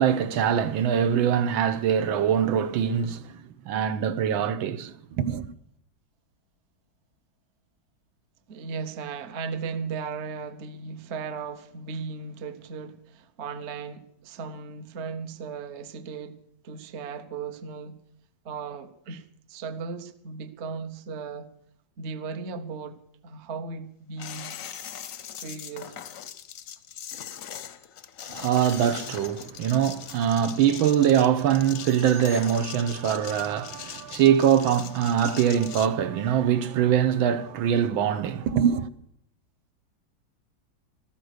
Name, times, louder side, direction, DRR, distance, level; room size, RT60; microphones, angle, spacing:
voice 1, 0.0-3.3 3.6-5.5 28.3-38.9, right 9 dB, 85° right, 1.6 m, -23 dB
voice 2, 8.5-18.0 18.4-21.5 22.0-24.5 25.4-25.9, right 5 dB, 45° right, 1.0 m, -36 dB
sound 1, 24.2-35.9, left 9 dB, 60° left, 0.8 m, -40 dB
14.5 x 13.5 x 6.5 m
omnidirectional pair, 2.2 m